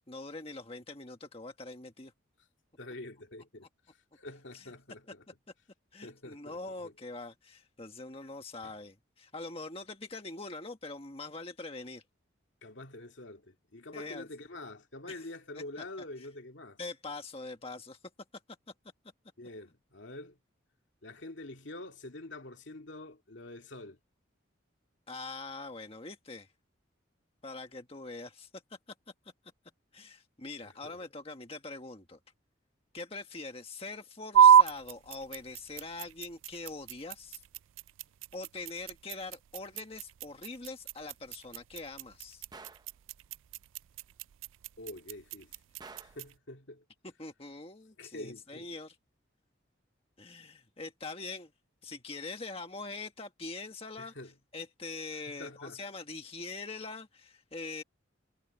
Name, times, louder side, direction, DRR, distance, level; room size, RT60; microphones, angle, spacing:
voice 1, 0.0-2.1 4.5-4.7 5.9-12.0 13.9-14.3 15.1-15.3 16.8-18.0 25.1-26.5 27.4-28.5 29.9-32.2 32.9-37.4 38.3-42.4 47.2-48.9 50.2-51.5 51.8-54.1 54.5-57.8, left 3 dB, 30° left, 1.5 m, -43 dB
voice 2, 2.8-3.7 4.1-5.2 6.0-6.9 8.6-8.8 12.6-16.8 19.4-20.4 21.0-24.0 30.6-31.0 44.8-45.5 46.0-46.8 48.0-48.7 54.0-54.3 55.3-55.8, left 2 dB, 70° left, 2.2 m, -46 dB
sound 1, 34.3-46.4, right 8 dB, 80° right, 0.3 m, -28 dB
Gunshot gunfire, 42.5-42.9 45.8-46.3, right 3 dB, 20° right, 0.7 m, -50 dB
head